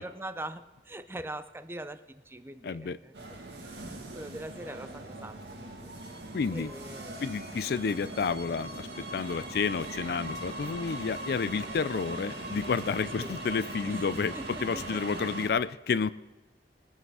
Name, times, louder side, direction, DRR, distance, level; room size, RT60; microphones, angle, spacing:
voice 1, 0.0-3.1 3.6-5.9 6.5-7.3 13.2-13.4 13.9-14.1 14.3-15.1, right 1 dB, 15° right, 12 dB, 0.5 m, -42 dB
voice 2, 2.6-3.0 6.3-6.7 7.2-16.1, left 5 dB, 60° left, 16 dB, 0.4 m, -30 dB
sound 1, 3.1-15.5, right 1 dB, 75° right, 2.1 m, -40 dB
20.0 x 7.8 x 4.8 m, 1.2 s
head